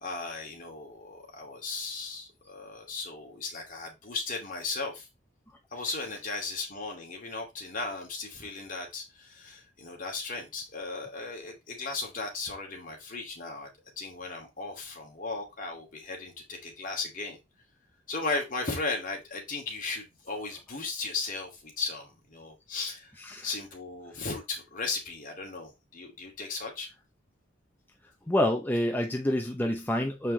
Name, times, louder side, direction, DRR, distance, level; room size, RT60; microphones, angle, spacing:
voice 1, 0.0-5.1 5.7-17.4 18.1-23.1 23.4-26.9, left 3 dB, 45° left, 2.4 m, -36 dB
voice 2, 23.2-23.5 28.3-30.3, left 1 dB, 10° left, 0.7 m, -27 dB
7.0 x 5.4 x 3.2 m
head